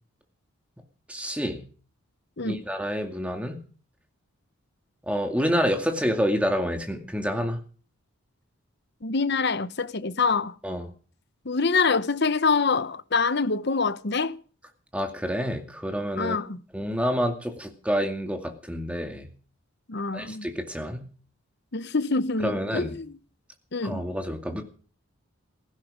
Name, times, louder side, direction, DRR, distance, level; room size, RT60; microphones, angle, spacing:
voice 1, 1.1-1.6 2.4-3.6 5.0-7.6 10.6-10.9 14.9-16.4 16.7-19.3 20.1-21.0 22.4-22.9 23.8-24.6, equal, 5° right, 2.3 m, -28 dB
voice 2, 9.0-10.5 11.4-14.4 16.2-16.6 19.9-20.5 21.7-23.2 23.7-24.0, left 4 dB, 50° left, 0.9 m, -25 dB
16.5 x 16.0 x 5.1 m
head